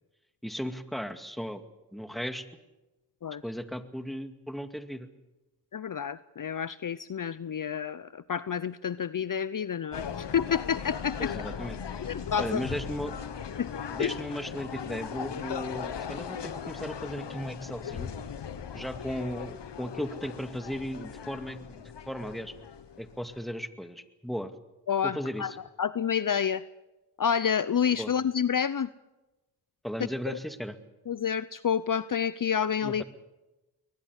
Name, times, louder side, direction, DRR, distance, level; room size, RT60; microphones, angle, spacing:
voice 1, 0.4-1.6 1.9-2.5 3.4-5.1 11.2-11.8 12.4-13.1 13.9-18.1 18.7-22.5 23.0-24.5 25.0-25.6 28.0-28.1 29.8-30.8 32.8-33.0, equal, ahead, 8 dB, 2.2 m, -36 dB
voice 2, 5.7-11.3 12.1-12.7 13.6-13.7 14.0-14.1 24.9-25.5 25.8-26.6 27.2-28.9 30.3-30.4 31.1-33.0, left 7 dB, 50° left, 16 dB, 0.7 m, -29 dB
sound 1, 9.9-23.4, left 7 dB, 85° left, 1.4 m, -38 dB
21.5 x 20.0 x 8.2 m, 1.0 s
cardioid pair, 45°, 41 cm